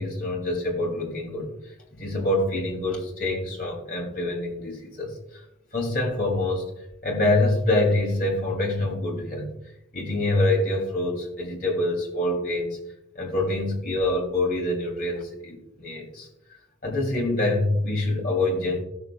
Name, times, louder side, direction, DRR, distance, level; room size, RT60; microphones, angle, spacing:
voice 1, 0.0-5.1 5.7-6.7 7.0-9.6 9.9-12.8 13.1-16.3 16.8-18.8, left 2 dB, 50° left, 0 dB, 2.7 m, -26 dB
16.0 x 6.8 x 2.3 m, 0.78 s
head